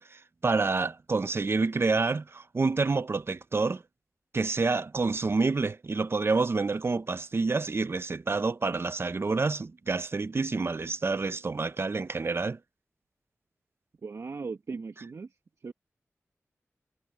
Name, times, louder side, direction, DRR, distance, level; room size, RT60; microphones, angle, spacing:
voice 1, 0.0-3.8 4.3-12.6, right 3 dB, 50° right, 0.7 m, -28 dB
voice 2, 14.0-15.4 15.6-15.7, right 4 dB, 75° right, 1.7 m, -38 dB
wide cardioid pair, 70°, 5 cm